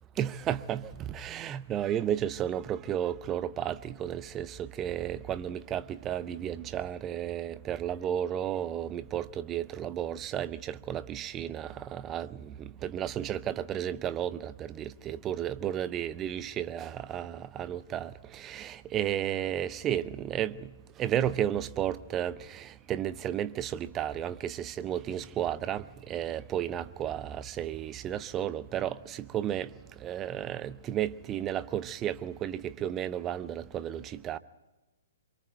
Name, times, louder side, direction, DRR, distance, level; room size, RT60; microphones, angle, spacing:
voice 1, 0.2-20.7 21.0-29.7 30.0-34.4, right 10 dB, 20° right, 0.7 m, -33 dB
27.0 x 23.5 x 4.6 m
figure-of-eight pair, 120°, 0 cm